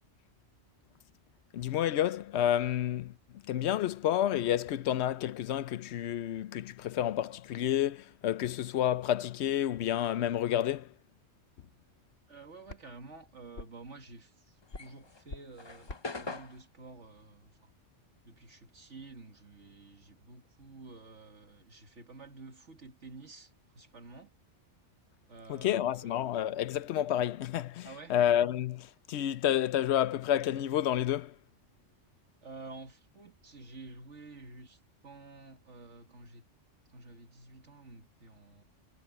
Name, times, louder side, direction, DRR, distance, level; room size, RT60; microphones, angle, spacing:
voice 1, 1.5-10.9 25.5-31.3, left 11 dB, 70° left, 0.8 m, -30 dB
voice 2, 12.3-17.7 18.2-24.3 25.3-26.2 27.8-28.2 32.4-36.4 36.9-38.6, right 3 dB, 75° right, 2.2 m, -50 dB
sound 1, 12.7-18.1, left 2 dB, 90° left, 3.4 m, -51 dB
sound 2, 14.6-19.3 19.6-21.6, left 3 dB, 25° left, 0.8 m, -45 dB
omnidirectional pair, 1.2 m